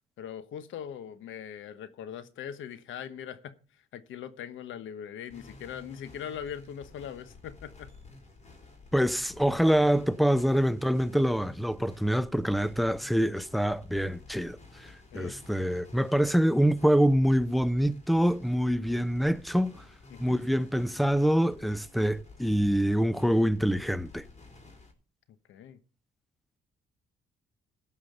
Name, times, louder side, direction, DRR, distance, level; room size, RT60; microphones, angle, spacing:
voice 1, 0.2-3.6 3.9-7.9 15.1-15.4 20.1-20.4 25.5-25.8, left 9 dB, 75° left, 1.2 m, -41 dB
sound 1, 5.3-24.9, left 3 dB, 35° left, 4.1 m, -51 dB
voice 2, 8.9-14.6 15.1-19.8 20.2-24.2, equal, ahead, 0.6 m, -25 dB
15.5 x 5.7 x 6.7 m
cardioid pair, 90°, 20 cm